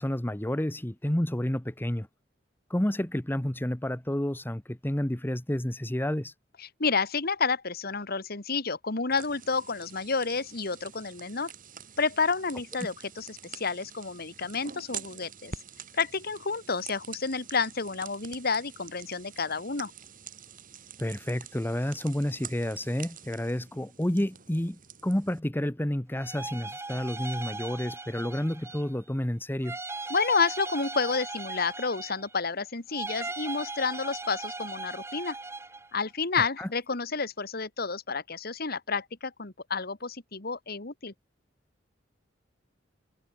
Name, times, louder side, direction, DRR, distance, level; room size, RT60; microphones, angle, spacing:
voice 1, 0.0-2.1 2.7-6.3 21.0-29.8 36.4-36.7, left 1 dB, 10° left, 1.0 m, -30 dB
voice 2, 6.6-11.5 12.0-15.5 15.9-19.9 30.1-35.4 35.9-41.1, left 4 dB, 55° left, 2.0 m, -30 dB
sound 1, 9.1-25.4, right 7 dB, 45° right, 5.3 m, -47 dB
sound 2, 26.2-29.0 29.6-32.4 32.9-35.9, right 3 dB, 15° right, 1.0 m, -38 dB
head